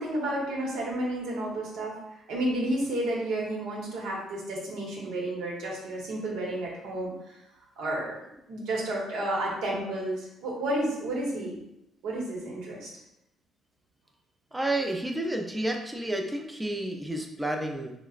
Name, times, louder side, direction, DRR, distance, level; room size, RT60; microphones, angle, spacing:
voice 1, 0.0-2.0 2.3-7.4 7.8-8.2 8.5-11.6 12.0-12.9, right 1 dB, 90° right, -3 dB, 0.8 m, -31 dB
voice 2, 14.5-17.9, right 1 dB, 10° right, 2 dB, 0.4 m, -30 dB
3.8 x 2.1 x 2.4 m, 0.84 s
cardioid pair, 90°, 0 cm